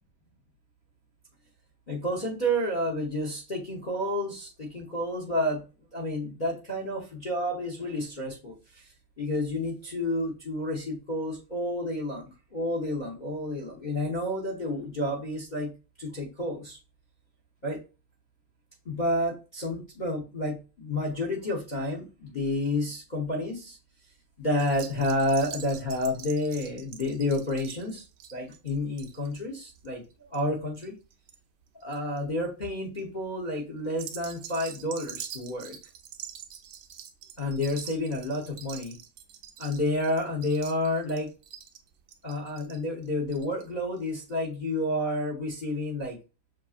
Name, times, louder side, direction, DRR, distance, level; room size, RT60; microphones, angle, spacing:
voice 1, 1.9-5.6 5.9-8.9 9.2-15.7 16.0-16.8 17.6-17.8 18.8-23.8 24.4-28.0 28.3-30.0 30.3-30.9 31.8-35.8 37.4-39.0 39.6-41.3 42.2-46.2, left 1 dB, 45° left, -1 dB, 0.5 m, -30 dB
sound 1, 24.6-31.4 31.7-32.2 32.7-33.0 33.9-43.7 44.0-44.1 44.3-44.4, right 9 dB, 75° right, 1.1 m, -45 dB
6.4 x 2.7 x 2.5 m, 0.31 s
omnidirectional pair, 2.3 m